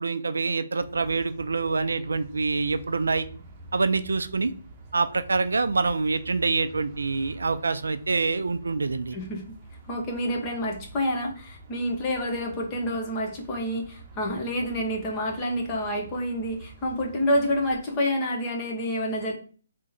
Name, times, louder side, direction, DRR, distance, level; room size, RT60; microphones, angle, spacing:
voice 1, 0.0-3.3 3.7-4.5 4.9-9.2, right 4 dB, 80° right, 11 dB, 0.3 m, -26 dB
sound 1, 0.8-17.8, right 2 dB, 30° right, 0.8 m, -47 dB
voice 2, 9.9-19.3, equal, 25° left, 1 dB, 1.0 m, -28 dB
3.6 x 2.1 x 4.2 m, 0.42 s
figure-of-eight pair, 140°, 0 cm